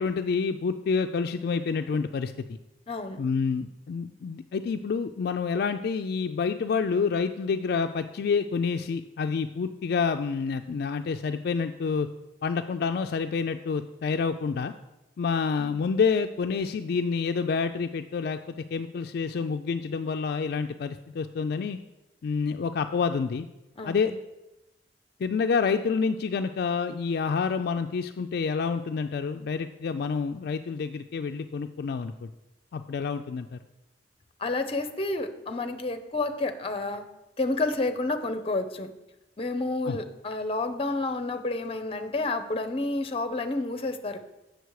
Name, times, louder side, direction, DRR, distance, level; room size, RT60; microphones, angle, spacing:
voice 1, 0.0-2.6 3.2-12.1 12.4-14.7 15.2-21.8 22.2-23.5 23.9-24.1 25.2-32.3 32.7-33.6 39.9-40.0, left 5 dB, 60° left, 7 dB, 0.3 m, -28 dB
voice 2, 2.9-3.2 23.8-24.1 34.4-37.0 37.4-38.9 39.4-44.2, left 2 dB, 35° left, 9 dB, 0.6 m, -30 dB
8.1 x 6.4 x 4.7 m, 0.97 s
head